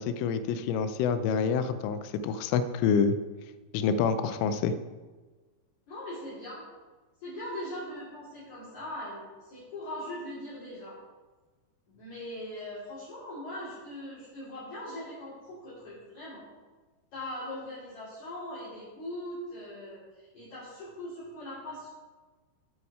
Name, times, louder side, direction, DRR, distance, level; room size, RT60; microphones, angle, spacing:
voice 1, 0.0-3.2 3.7-4.8, left 6 dB, 85° left, 11 dB, 3.2 m, -27 dB
voice 2, 5.9-6.6 7.2-11.0 11.9-16.4 17.1-21.9, left 1 dB, 45° left, -10 dB, 3.5 m, -40 dB
8.6 x 8.6 x 4.8 m, 1.3 s
omnidirectional pair, 5.6 m